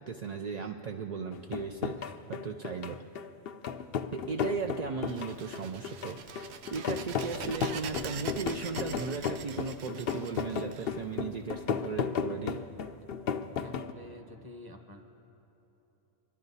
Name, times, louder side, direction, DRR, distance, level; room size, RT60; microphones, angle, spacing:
voice 1, 0.0-3.0 4.1-6.4 6.7-12.6, right 5 dB, 50° right, 3 dB, 0.5 m, -37 dB
sound 1, 1.3-13.9, left 7 dB, 60° left, 0.7 m, -34 dB
sound 2, 5.1-11.6, right 7 dB, 70° right, 0.9 m, -44 dB
voice 2, 13.5-15.0, left 1 dB, 20° right, 4 dB, 1.1 m, -48 dB
24.5 x 12.0 x 4.1 m, 3.0 s
omnidirectional pair, 1.2 m